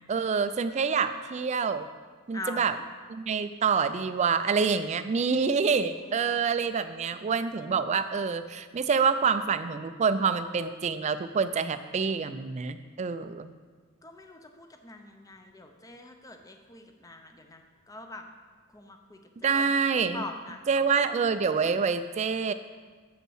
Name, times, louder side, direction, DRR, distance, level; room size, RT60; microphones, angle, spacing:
voice 1, 0.1-1.9 2.3-2.8 3.1-13.5 19.4-20.2 20.7-22.5, right 5 dB, 30° right, 11 dB, 0.3 m, -27 dB
voice 2, 2.3-2.8 5.2-5.5 5.9-6.4 14.0-18.2 18.7-20.7, left 2 dB, 15° left, 5 dB, 0.6 m, -44 dB
7.3 x 5.3 x 6.4 m, 1.5 s
head